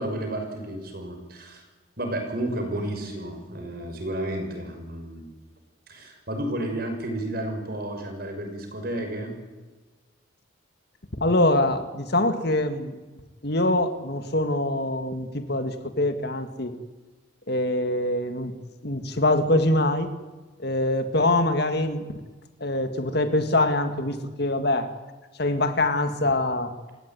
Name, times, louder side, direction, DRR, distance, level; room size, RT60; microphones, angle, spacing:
voice 1, 0.0-1.6 2.0-5.3 5.9-9.4, right 1 dB, 50° right, 4 dB, 6.3 m, -32 dB
voice 2, 11.2-13.0 13.4-16.7 17.5-18.5 18.8-20.1 20.6-22.0 22.6-24.9 25.4-26.7, left 1 dB, 55° left, 9 dB, 1.9 m, -24 dB
29.0 x 16.5 x 9.4 m, 1.3 s
head